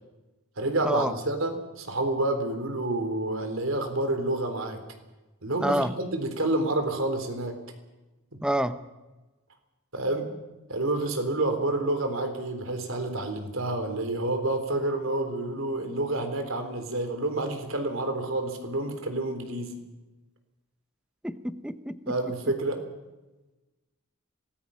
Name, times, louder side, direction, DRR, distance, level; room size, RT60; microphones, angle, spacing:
voice 1, 0.6-4.8 5.4-7.6 8.3-8.4 9.9-10.3 10.7-19.8 22.1-22.8, right 2 dB, 65° right, 6 dB, 3.7 m, -29 dB
voice 2, 5.6-5.9 8.4-8.8 21.2-22.2, right 1 dB, 5° right, 12 dB, 0.8 m, -28 dB
26.0 x 19.5 x 5.8 m, 1.1 s
head